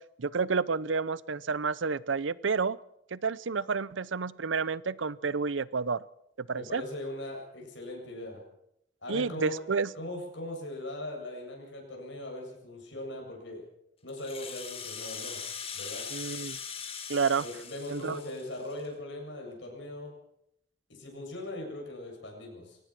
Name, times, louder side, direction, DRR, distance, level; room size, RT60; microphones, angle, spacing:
voice 1, 0.2-2.8 3.1-6.0 6.5-6.8 9.1-9.9 16.1-16.6 17.1-17.4 17.9-18.2, right 5 dB, 85° right, 20 dB, 0.7 m, -30 dB
voice 2, 6.5-8.4 9.0-9.6 9.9-13.6 14.0-15.4 15.7-16.1 17.4-20.1 20.9-22.8, left 1 dB, 75° left, 1 dB, 7.5 m, -40 dB
Rattle (instrument), 14.1-18.9, left 6 dB, 30° left, 2.3 m, -41 dB
23.5 x 18.0 x 6.1 m, 0.77 s
head